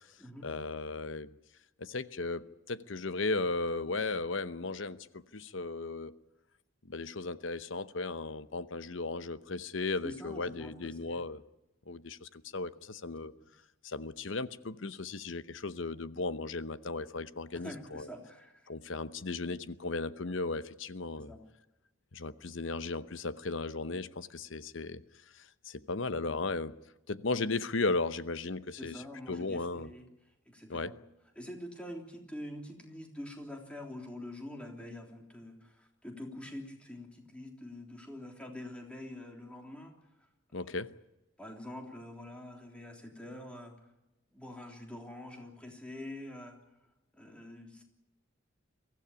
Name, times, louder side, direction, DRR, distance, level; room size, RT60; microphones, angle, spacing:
voice 1, 0.4-1.3 1.8-6.1 6.9-11.4 11.9-13.3 13.8-18.1 18.7-21.3 22.1-25.0 25.3-26.7 27.1-29.0 29.3-29.9 30.7-30.9 40.5-40.9, left 3 dB, 70° left, 14 dB, 0.9 m, -36 dB
voice 2, 10.0-11.2 13.3-13.5 17.5-18.7 21.2-21.4 28.8-30.1 30.5-31.0 31.4-39.9 40.5-40.7 41.4-43.8 44.3-46.6 47.1-47.8, left 1 dB, 5° left, 2 dB, 3.4 m, -45 dB
23.5 x 15.5 x 9.9 m, 0.98 s
head